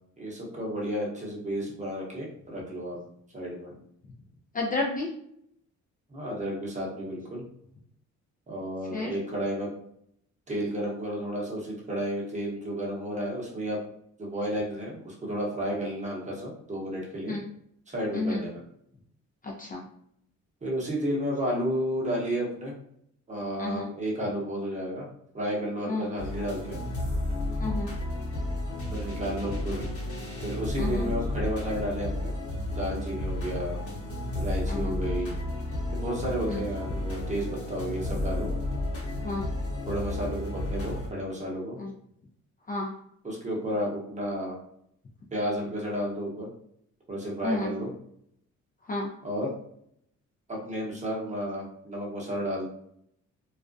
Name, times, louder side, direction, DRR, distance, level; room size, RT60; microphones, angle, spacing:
voice 1, 0.2-3.0 3.3-3.8 6.1-7.4 8.5-9.7 10.5-13.8 14.2-17.4 17.9-18.6 20.6-22.7 23.3-25.1 25.3-26.8 28.9-29.9 30.4-32.3 32.7-33.8 34.3-35.3 35.9-38.5 39.9-41.8 43.2-44.6 45.3-46.5 47.1-47.9 49.2-49.5 50.5-52.7, equal, 25° right, -3 dB, 0.9 m, -32 dB
voice 2, 4.5-5.1 8.9-9.1 17.3-17.4 18.1-18.4 19.4-19.8 23.6-23.9 25.9-26.1 27.6-27.9 30.8-31.1 34.7-35.0 36.5-36.6 39.2-39.5 41.8-41.9 42.7-42.9 47.4-47.7 48.9-49.1, left 2 dB, 30° left, -1 dB, 0.4 m, -31 dB
sound 1, 26.2-41.1, left 1 dB, 50° left, 1.0 m, -32 dB
2.4 x 2.0 x 2.5 m, 0.72 s
cardioid pair, 90°, 30 cm